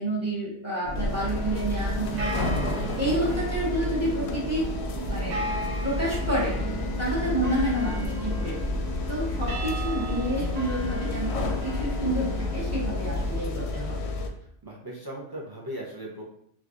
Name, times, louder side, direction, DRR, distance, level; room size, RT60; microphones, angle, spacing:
voice 1, 0.0-2.3 3.0-4.7 5.1-5.4 5.8-6.6 7.0-8.6 9.1-14.1, right 1 dB, 15° right, -5 dB, 0.9 m, -29 dB
sound 1, 0.8-13.4, equal, 80° right, 1.1 m, -32 dB
sound 2, 1.0-14.3, left 2 dB, 65° left, 0.8 m, -32 dB
voice 2, 7.1-7.5 9.1-9.3 14.6-16.2, right 1 dB, 35° right, -3 dB, 0.4 m, -38 dB
4.5 x 2.4 x 2.5 m, 0.68 s
omnidirectional pair, 1.3 m